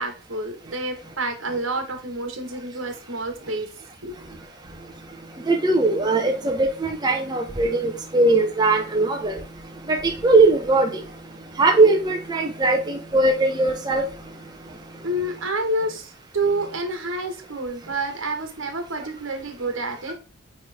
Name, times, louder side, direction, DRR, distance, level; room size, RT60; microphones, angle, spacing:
voice 1, 0.0-3.7 4.0-4.2 15.0-20.1, right 2 dB, 70° right, 1.5 m, -28 dB
voice 2, 5.5-9.3 10.0-10.9 11.6-14.0, right 2 dB, 20° right, 0.7 m, -19 dB
8.8 x 3.3 x 3.5 m
head